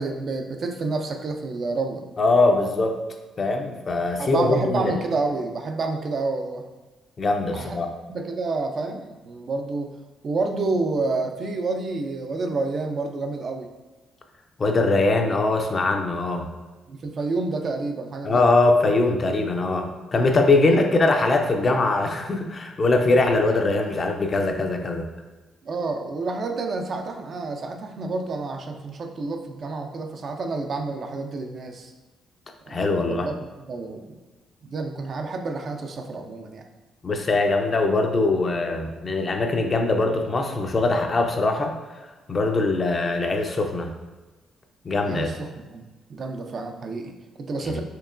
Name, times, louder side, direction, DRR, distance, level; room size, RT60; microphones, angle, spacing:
voice 1, 0.0-2.1 4.2-6.6 7.5-7.8 8.1-9.9 10.2-13.7 16.9-18.4 20.7-20.9 25.6-31.9 32.7-33.3 33.7-34.2 34.6-36.6 45.0-47.8, right 3 dB, 50° right, 5 dB, 0.4 m, -29 dB
voice 2, 2.2-3.0 3.4-5.0 7.2-7.9 14.6-16.5 18.2-25.0 32.7-33.3 37.0-41.7 42.3-43.9 44.8-45.3 47.6-47.8, left 2 dB, 35° left, 4 dB, 0.5 m, -22 dB
4.5 x 2.9 x 2.5 m, 1.2 s
cardioid pair, 90°, 0 cm